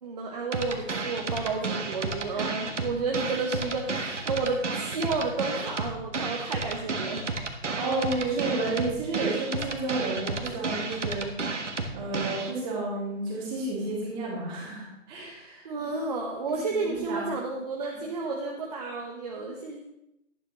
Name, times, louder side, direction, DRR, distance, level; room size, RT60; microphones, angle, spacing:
voice 1, 0.0-7.2 15.6-19.8, right 3 dB, 30° right, -1 dB, 1.1 m, -31 dB
sound 1, 0.5-12.5, right 3 dB, 65° right, 1.5 m, -32 dB
voice 2, 7.7-11.3 11.9-15.7 16.5-17.3 17.9-18.0, right 2 dB, 10° right, -5 dB, 2.5 m, -31 dB
12.0 x 11.0 x 3.1 m, 0.85 s
figure-of-eight pair, 145°, 38 cm